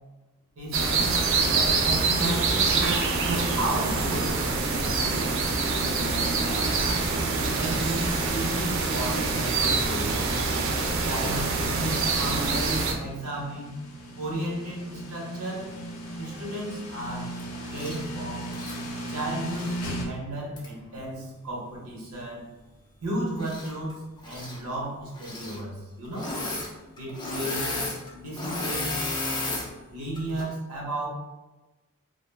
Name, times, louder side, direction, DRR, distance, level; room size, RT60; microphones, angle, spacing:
sound 1, 0.7-12.9, right 3 dB, 60° right, 0.4 m, -25 dB
voice 1, 1.5-3.0 3.5-7.0 7.4-10.1 11.0-13.7 14.2-15.7 16.2-17.3 17.7-18.5 19.1-22.5 23.0-26.3 27.0-27.7 28.1-29.1 29.9-31.1, right 1 dB, 85° right, -3 dB, 0.8 m, -34 dB
sound 2, 12.7-20.0, right 1 dB, 70° left, 0.6 m, -38 dB
Engine / Mechanisms, 17.7-18.0 18.4-19.8 20.6-20.7 23.4-23.9 24.2-24.6 25.1-25.6 26.1-26.7 27.0-29.7 30.2-30.4, left 2 dB, 20° left, 0.4 m, -33 dB
2.3 x 2.1 x 3.2 m, 1.1 s
head